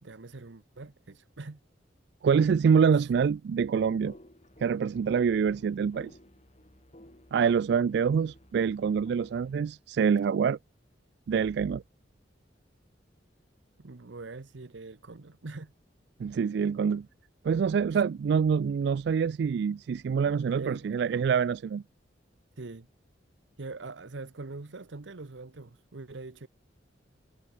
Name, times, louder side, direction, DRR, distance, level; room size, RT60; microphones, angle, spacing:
voice 1, 0.0-1.6 13.8-15.7 17.9-18.0 20.5-20.9 22.6-22.9 23.6-26.5, right 3 dB, 80° right, 0.9 m, -43 dB
voice 2, 2.2-4.1 4.6-6.1 7.3-10.6 11.3-11.8 16.2-17.1 17.4-21.8, right 6 dB, 60° right, 0.3 m, -26 dB
sound 1, 4.0-9.7, left 1 dB, 40° left, 5.3 m, -55 dB
head